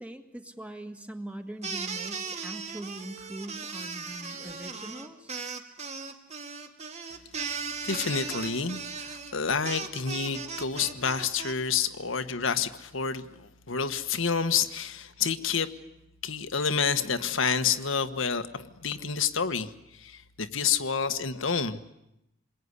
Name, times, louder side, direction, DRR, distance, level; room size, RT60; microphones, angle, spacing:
voice 1, 0.0-5.3, right 1 dB, 5° right, 6 dB, 1.9 m, -41 dB
My little aaaaaaaaaaaaaaaaaa, 1.6-11.5, right 5 dB, 35° right, 2.3 m, -37 dB
voice 2, 7.8-15.7 16.2-21.8, left 6 dB, 75° left, 9 dB, 1.4 m, -29 dB
27.5 x 22.0 x 9.8 m, 0.86 s
head